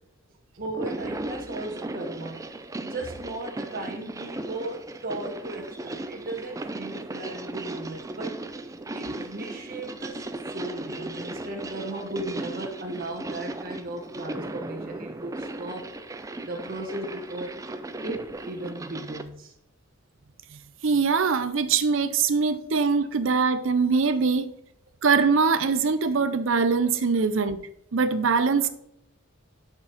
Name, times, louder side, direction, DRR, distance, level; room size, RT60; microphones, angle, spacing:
sound 1, 0.6-19.3, right 2 dB, 15° right, 0.4 m, -36 dB
voice 1, 0.6-2.4 2.8-8.4 8.9-17.7 18.0-19.5 26.8-26.9, right 2 dB, 45° right, 1.1 m, -36 dB
voice 2, 20.8-24.5 25.0-27.6 27.9-28.7, right 5 dB, 70° right, 0.6 m, -22 dB
7.1 x 5.3 x 4.0 m
head